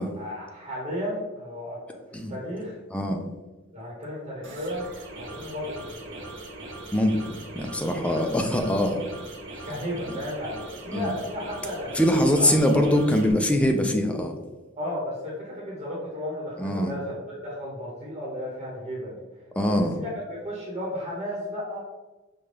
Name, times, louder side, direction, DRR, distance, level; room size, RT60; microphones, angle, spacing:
voice 1, 0.0-1.8 2.3-2.8 3.7-4.9 5.2-6.2 8.1-8.3 9.6-12.8 14.8-19.1 19.6-21.8, left 1 dB, 30° right, -6 dB, 1.0 m, -34 dB
voice 2, 2.9-3.2 6.9-9.0 10.1-10.2 10.9-11.1 11.9-14.4 16.6-16.9 19.6-20.0, left 1 dB, 5° left, 4 dB, 0.3 m, -23 dB
sound 1, 4.4-13.3, right 2 dB, 60° right, 0.8 m, -40 dB
5.2 x 2.2 x 3.2 m, 1.2 s
head